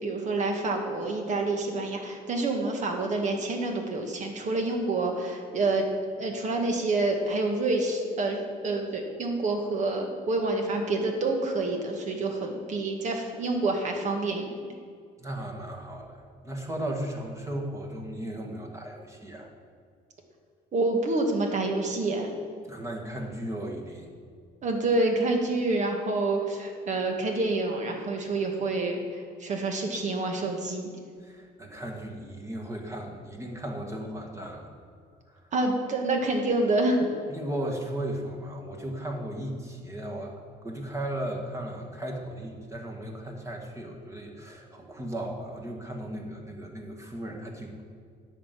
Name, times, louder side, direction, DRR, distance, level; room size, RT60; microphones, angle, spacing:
voice 1, 0.0-5.9 6.2-14.5 20.7-22.3 24.6-30.9 35.5-37.1, right 2 dB, 45° right, 3 dB, 1.8 m, -27 dB
voice 2, 15.2-19.5 22.7-24.1 31.2-34.7 35.3-35.5 37.3-40.4 40.6-47.8, right 1 dB, 15° right, 1 dB, 1.8 m, -36 dB
10.5 x 5.3 x 7.7 m, 2.1 s
cardioid pair, 110°, 17 cm